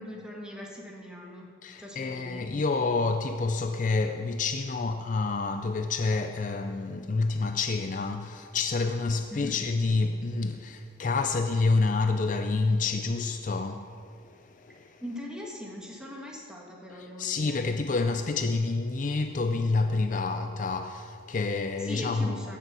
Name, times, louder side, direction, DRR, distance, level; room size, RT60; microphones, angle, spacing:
voice 1, 0.0-1.5 1.8-2.6 9.3-9.6 15.0-17.6 21.8-22.6, left 1 dB, 5° right, 1.6 m, -40 dB
voice 2, 1.6-15.0 16.9-22.5, left 3 dB, 40° left, 0.4 m, -28 dB
16.0 x 6.7 x 6.1 m
head